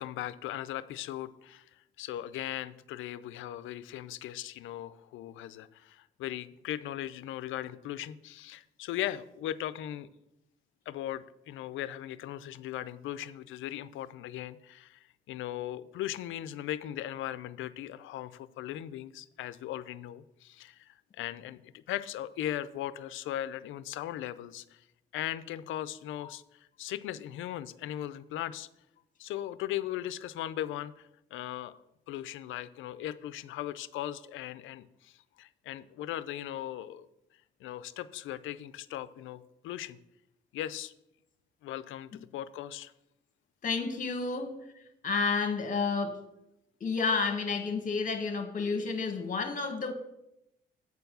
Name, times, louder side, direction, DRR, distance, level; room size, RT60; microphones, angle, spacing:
voice 1, 0.0-1.6 2.0-10.1 10.9-24.8 25.1-26.4 26.8-28.7 29.2-31.7 32.1-37.1 37.6-40.0 40.5-40.9 41.6-42.9, left 12 dB, 85° left, 0.5 m, -38 dB
voice 2, 43.6-44.6 45.0-46.2 46.8-49.9, left 4 dB, 40° left, 1.5 m, -30 dB
8.2 x 4.6 x 6.7 m
cardioid pair, 90°, 20 cm